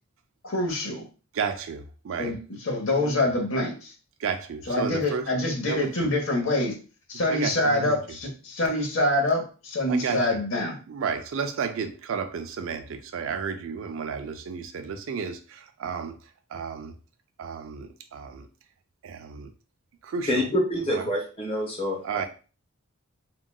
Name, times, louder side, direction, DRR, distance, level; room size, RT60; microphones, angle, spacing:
voice 1, 0.4-1.0 2.2-3.9 4.7-6.7 7.1-10.8, left 1 dB, 65° left, 0.9 m, -25 dB
voice 2, 1.3-2.4 2.9-3.1 4.2-5.3 5.7-6.1 7.3-8.0 9.9-10.3 10.9-16.2 16.5-16.9 17.4-18.5 19.0-19.5 20.0-20.5 20.9-21.0 22.0-22.3, right 6 dB, 65° right, 0.4 m, -32 dB
voice 3, 20.3-22.2, equal, 25° left, 1.0 m, -27 dB
3.7 x 2.2 x 2.2 m
head